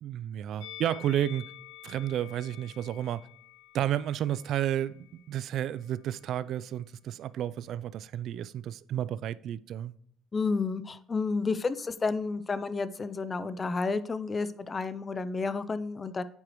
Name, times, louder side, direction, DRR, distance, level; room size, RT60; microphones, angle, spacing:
voice 1, 0.0-1.4 1.8-3.3 3.7-9.9, right 11 dB, 60° right, 0.3 m, -32 dB
Musical instrument, 0.6-5.8 6.1-6.3, left 14 dB, 90° left, 0.9 m, -49 dB
voice 2, 10.3-16.2, left 4 dB, 25° left, 0.5 m, -31 dB
8.7 x 4.7 x 3.0 m
cardioid pair, 105°, 0 cm